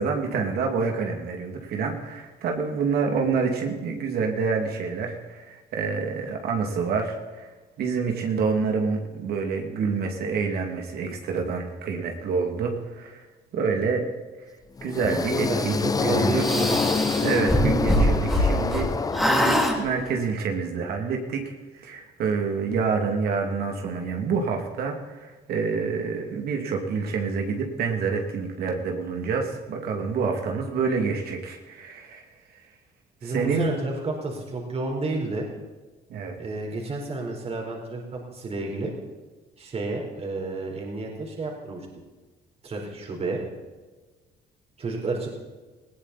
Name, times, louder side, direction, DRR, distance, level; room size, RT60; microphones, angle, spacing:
voice 1, 0.0-13.3 13.5-14.0 14.4-14.5 14.8-16.6 17.2-21.4 21.7-32.2 32.5-32.6 33.2-33.7 36.1-36.4, right 5 dB, 65° right, 2 dB, 2.6 m, -27 dB
sound 1, 14.8-19.9, left 4 dB, 20° left, 0.6 m, -26 dB
voice 2, 15.5-17.2 33.2-35.5 36.4-38.9 39.6-41.9 42.6-43.4 44.8-45.3, right 2 dB, 35° right, 0 dB, 4.3 m, -30 dB
sound 2, 16.4-18.9 19.1-19.8, equal, ahead, 3.3 m, -23 dB
20.0 x 16.5 x 4.3 m, 1.3 s
cardioid pair, 110°, 17 cm